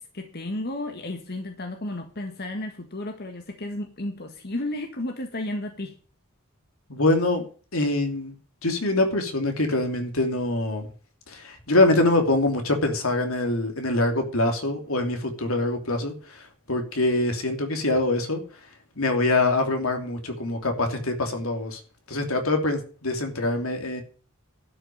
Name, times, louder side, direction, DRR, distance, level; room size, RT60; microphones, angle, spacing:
voice 1, 0.0-6.0, left 1 dB, 50° left, 1.7 m, -33 dB
voice 2, 6.9-7.5 7.7-8.3 8.6-10.9 11.3-18.4 19.0-21.8 22.1-24.0, left 2 dB, 80° left, 2.9 m, -24 dB
12.0 x 6.2 x 9.4 m
head